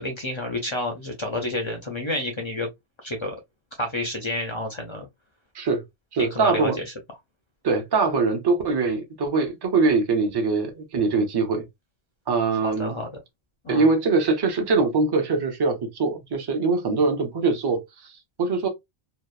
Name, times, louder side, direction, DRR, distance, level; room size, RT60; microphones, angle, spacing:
voice 1, 0.0-2.7 3.0-3.4 3.8-5.1 6.2-6.8 12.6-13.1 13.6-13.9, left 1 dB, 50° left, 0.3 m, -29 dB
voice 2, 6.1-6.8 7.6-11.6 12.3-13.0 13.7-17.8 18.4-18.7, right 4 dB, 30° right, 0.4 m, -22 dB
2.9 x 2.0 x 2.3 m
omnidirectional pair, 1.2 m